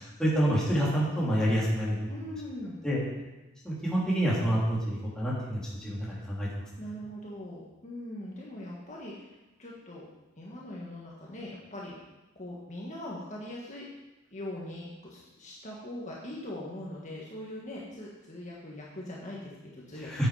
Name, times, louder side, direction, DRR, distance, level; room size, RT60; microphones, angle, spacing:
voice 1, 0.2-2.1 2.8-3.0 3.6-6.5 20.1-20.3, equal, 5° left, -7 dB, 3.1 m, -27 dB
voice 2, 2.1-2.8 6.8-10.1 10.4-11.9 12.3-13.8 14.3-20.3, left 1 dB, 40° left, -4 dB, 1.7 m, -41 dB
9.8 x 8.0 x 5.0 m, 1.1 s
head